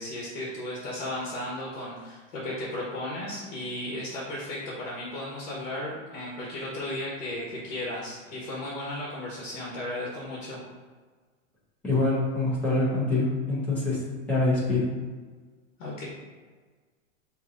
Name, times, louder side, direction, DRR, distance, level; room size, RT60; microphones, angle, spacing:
voice 1, 0.0-10.6 15.8-16.1, left 1 dB, 50° left, -5 dB, 1.3 m, -35 dB
voice 2, 11.8-14.0 14.3-14.9, left 2 dB, 5° left, -8 dB, 0.6 m, -25 dB
5.8 x 2.9 x 2.5 m, 1.4 s
supercardioid pair, 165°, 39 cm